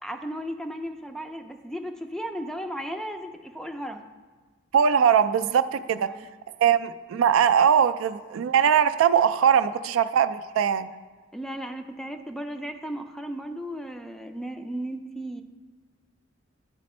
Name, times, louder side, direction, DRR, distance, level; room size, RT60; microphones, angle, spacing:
voice 1, 0.0-4.1 6.0-6.3 11.3-15.4, equal, 5° left, 7 dB, 0.3 m, -35 dB
voice 2, 4.7-6.1 6.6-10.9, right 8 dB, 80° right, 12 dB, 0.3 m, -21 dB
9.7 x 4.2 x 4.2 m, 1.4 s
head